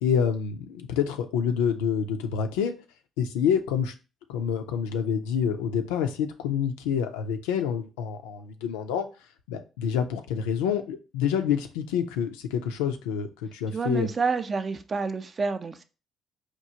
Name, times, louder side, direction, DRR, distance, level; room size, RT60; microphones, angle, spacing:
voice 1, 0.0-2.7 3.2-3.9 4.3-9.1 9.5-14.1, left 7 dB, 80° left, 0.4 m, -27 dB
voice 2, 13.7-15.8, right 4 dB, 45° right, 0.5 m, -28 dB
4.5 x 2.3 x 2.8 m
hypercardioid pair, 50°, 0 cm